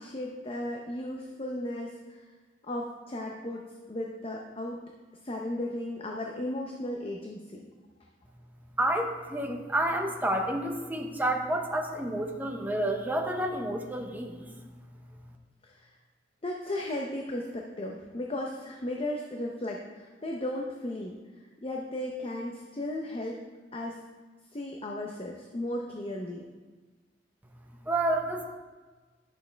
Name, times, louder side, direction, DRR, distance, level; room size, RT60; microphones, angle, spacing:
voice 1, 0.0-2.2 2.6-4.8 5.2-7.7 15.6-15.9 16.4-21.2 21.6-23.4 23.7-24.0 24.5-26.5, left 1 dB, 30° left, 0 dB, 0.7 m, -35 dB
voice 2, 8.8-14.6 27.9-28.5, right 1 dB, 10° right, 2 dB, 0.8 m, -29 dB
11.0 x 6.6 x 3.4 m, 1.3 s
head